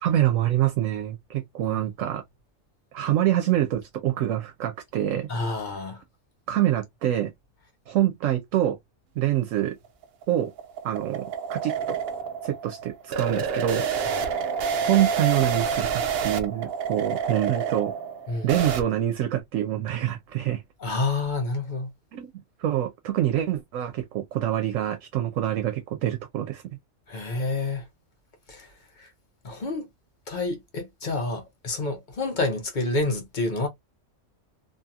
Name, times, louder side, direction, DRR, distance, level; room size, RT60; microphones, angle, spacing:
voice 1, 0.0-2.2 2.9-5.3 6.5-7.3 7.9-8.8 9.2-9.8 10.3-10.5 10.8-12.0 12.4-13.9 14.8-18.0 18.4-20.6 22.1-22.3 22.6-26.6, right 12 dB, 85° right, 1.0 m, -25 dB
voice 2, 5.3-6.0 14.0-14.3 18.3-18.6 20.8-21.9 27.1-27.8 28.5-29.1 29.4-29.9 30.3-33.7, left 2 dB, 45° left, 0.7 m, -29 dB
sound 1, 9.8-18.8, right 6 dB, 60° right, 0.7 m, -28 dB
2.7 x 2.6 x 2.3 m
omnidirectional pair, 1.3 m